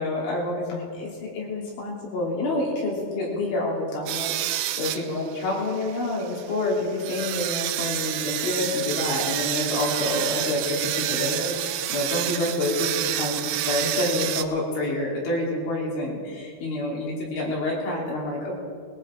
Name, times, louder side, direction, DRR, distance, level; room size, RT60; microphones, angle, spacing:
voice 1, 0.0-18.5, left 2 dB, 70° left, -4 dB, 5.5 m, -28 dB
sound 1, 4.1-14.4, right 13 dB, 85° right, 3.2 m, -29 dB
21.5 x 15.5 x 3.7 m, 2.1 s
omnidirectional pair, 5.7 m